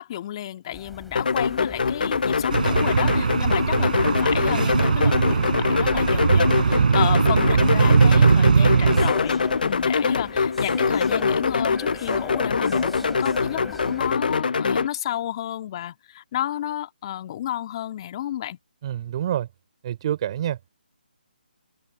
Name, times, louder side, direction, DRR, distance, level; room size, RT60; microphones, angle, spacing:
voice 1, 0.0-18.6, left 12 dB, 30° left, 2.0 m, -31 dB
sound 1, 0.7-14.2, left 1 dB, ahead, 5.3 m, -43 dB
sound 2, 1.1-14.9, left 5 dB, 60° left, 0.7 m, -23 dB
sound 3, 2.5-9.1, right 5 dB, 55° right, 5.6 m, -20 dB
voice 2, 18.8-19.5 19.8-20.6, right 11 dB, 35° right, 3.1 m, -27 dB
open air
figure-of-eight pair, 150°, 5 cm